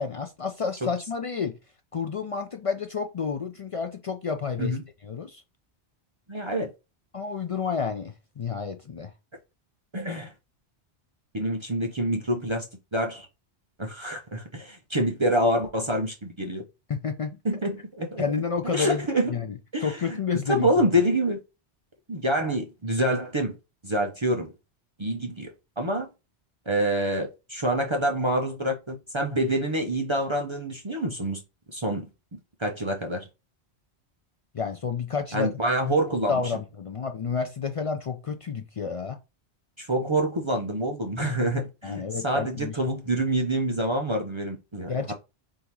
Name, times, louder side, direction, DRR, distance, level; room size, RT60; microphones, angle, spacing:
voice 1, 0.0-1.6 1.9-5.4 7.1-9.1 16.9-17.4 18.2-19.5 19.8-20.7 34.5-35.5 36.3-39.2 41.8-42.8 44.9-45.1, left 5 dB, 55° left, 0.4 m, -30 dB
voice 2, 6.3-6.7 9.9-10.3 11.3-12.7 12.9-13.3 13.8-16.6 17.4-18.2 18.7-19.3 19.7-20.2 20.5-21.4 22.1-23.6 23.8-24.5 25.0-26.1 26.7-31.4 31.7-32.1 32.6-33.3 35.3-36.4 39.8-44.9, right 1 dB, 35° right, 0.6 m, -26 dB
3.6 x 2.7 x 4.5 m
omnidirectional pair, 1.1 m